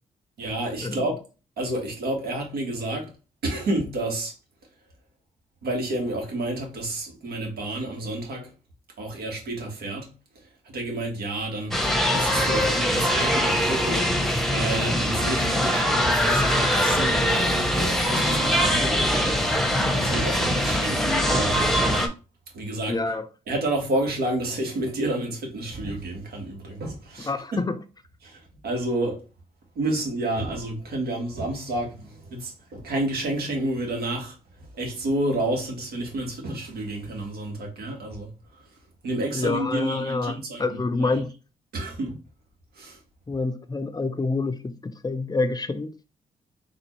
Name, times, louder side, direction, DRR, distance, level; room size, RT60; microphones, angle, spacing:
voice 1, 0.4-1.2 1.6-3.1 3.4-4.3 5.6-8.5 9.0-10.1 10.7-11.7 12.1-14.1 14.5-19.4 19.9-21.6 22.5-23.0 23.5-27.6 28.2-29.2 29.7-34.3 34.7-38.3 39.0-40.6 41.0-41.2 41.7-42.1 42.8-43.0, right 1 dB, 75° right, 1.5 m, -30 dB
sound 1, 11.7-22.1, equal, ahead, 0.9 m, -22 dB
voice 2, 22.9-23.2 27.2-27.8 39.3-41.3 43.3-45.9, left 3 dB, 25° left, 0.5 m, -27 dB
3.9 x 2.5 x 3.1 m
supercardioid pair, 55°, 17 cm